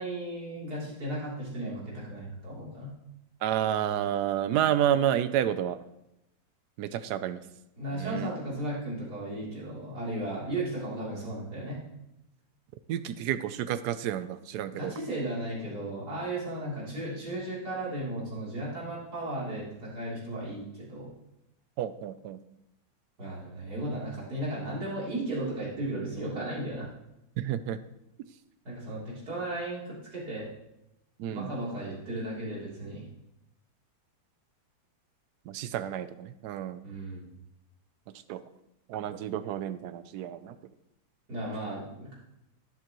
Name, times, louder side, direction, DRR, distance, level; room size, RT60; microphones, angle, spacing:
voice 1, 0.0-2.9 7.8-11.8 14.7-21.1 23.2-26.9 28.7-30.5 31.3-33.0 36.8-37.2 41.3-42.1, right 1 dB, 55° right, -6 dB, 3.9 m, -35 dB
voice 2, 3.4-5.8 6.8-7.4 7.9-8.3 12.9-14.9 21.8-22.4 27.4-27.8 31.2-31.5 35.5-36.8 38.3-38.4 38.9-40.6, right 10 dB, 75° right, 12 dB, 1.0 m, -30 dB
11.5 x 10.0 x 3.1 m, 0.86 s
omnidirectional pair, 2.1 m